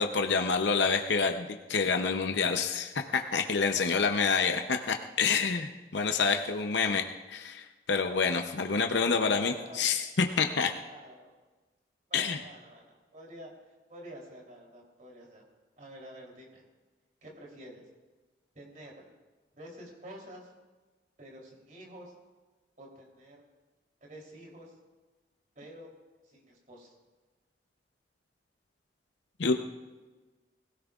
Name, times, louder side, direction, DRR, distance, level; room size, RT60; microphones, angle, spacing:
voice 1, 0.0-10.7 12.1-12.4 29.4-29.5, left 5 dB, 80° left, 5 dB, 0.7 m, -28 dB
voice 2, 8.8-9.8 10.8-11.3 12.1-13.5 13.9-15.4 15.8-16.6 17.2-17.8 18.5-19.0 19.5-20.5 21.2-22.1 22.8-23.4 24.1-24.7 25.5-25.9 26.2-26.9, right 1 dB, 45° right, -1 dB, 3.2 m, -48 dB
22.0 x 16.5 x 2.4 m, 1.3 s
head